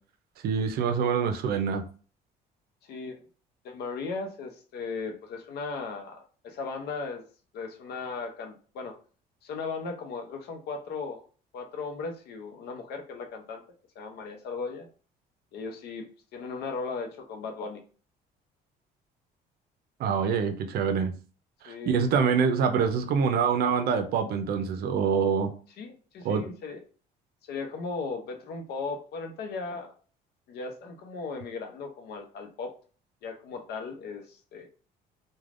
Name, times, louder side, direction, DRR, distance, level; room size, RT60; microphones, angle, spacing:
voice 1, 0.4-1.9 20.0-21.1 21.6-25.5 26.2-26.5, right 6 dB, 65° right, 0.5 m, -25 dB
voice 2, 2.8-3.2 3.6-7.3 7.5-9.0 9.4-11.2 11.5-13.6 14.0-14.9 15.5-17.8 21.7-22.3 25.8-26.8 27.5-29.9 30.5-32.8 33.2-34.7, left 4 dB, 70° left, 0.6 m, -37 dB
3.2 x 2.2 x 2.4 m
cardioid pair, 110°, 17 cm